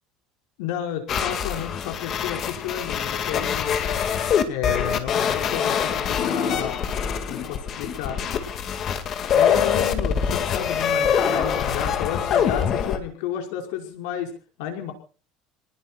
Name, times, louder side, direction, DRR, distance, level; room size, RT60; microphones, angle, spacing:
voice 1, 0.6-3.7 4.5-6.8 7.3-8.2 9.3-14.3 14.6-14.9, left 9 dB, 85° left, 4 dB, 5.4 m, -31 dB
sound 1, 1.1-13.0, left 7 dB, 30° left, 2.1 m, -24 dB
29.0 x 19.5 x 2.4 m, 0.37 s
cardioid pair, 175°, 0 cm